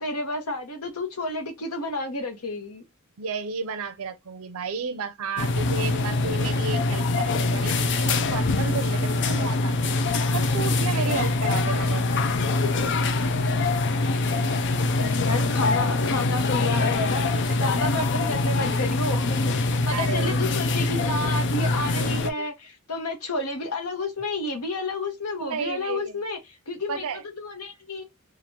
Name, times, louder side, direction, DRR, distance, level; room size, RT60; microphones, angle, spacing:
voice 1, 0.0-2.8 10.4-10.5 15.0-17.3 17.6-19.5 19.9-22.5 22.9-26.4 26.7-27.0 27.4-28.0, left 2 dB, 75° left, 1.1 m, -30 dB
voice 2, 3.2-10.0 10.3-12.0 17.5-17.6 19.9-20.4 21.9-22.5 25.3-26.2 26.9-27.2, right 5 dB, 70° right, 0.6 m, -32 dB
sound 1, 5.4-22.3, left 2 dB, 55° left, 0.4 m, -24 dB
2.9 x 2.5 x 4.3 m
head